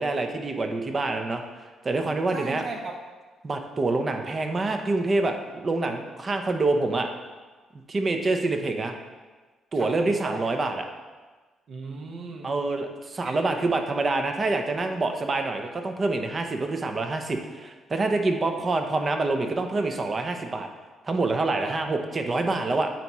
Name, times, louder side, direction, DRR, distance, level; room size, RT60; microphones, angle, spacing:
voice 1, 0.0-1.4 1.8-2.6 3.4-7.1 7.9-8.9 9.7-10.8 12.4-20.7 21.0-22.9, right 3 dB, 35° right, 5 dB, 0.8 m, -26 dB
voice 2, 2.3-2.9 9.7-10.4 11.7-12.6 13.2-13.4 21.6-21.8, right 3 dB, 55° right, 2 dB, 1.0 m, -36 dB
9.2 x 3.1 x 4.7 m, 1.3 s
cardioid pair, 90°, 0 cm